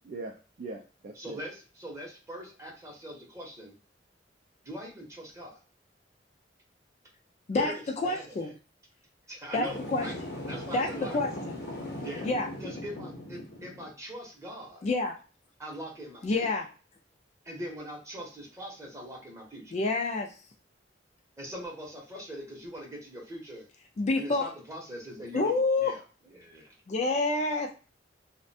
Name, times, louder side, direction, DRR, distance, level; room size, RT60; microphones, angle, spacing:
voice 1, 0.1-1.4, right 3 dB, 50° right, 1 dB, 0.3 m, -41 dB
voice 2, 1.1-3.7 4.6-5.6 7.5-8.5 9.3-10.1 10.5-11.2 12.0-12.3 12.6-14.9 15.6-16.5 17.4-19.8 21.4-23.6 24.2-26.0 26.4-26.7, equal, 15° right, -1 dB, 0.8 m, -42 dB
voice 3, 8.0-8.5 9.5-9.7 9.9-10.1 10.7-11.5 12.2-12.5 14.8-15.2 16.2-16.6 19.7-20.3 24.0-24.5 25.3-25.9 26.9-27.7, left 3 dB, 40° left, 3 dB, 0.3 m, -27 dB
sound 1, 9.7-13.9, left 1 dB, 65° left, 0.7 m, -39 dB
2.4 x 2.1 x 2.6 m, 0.35 s
head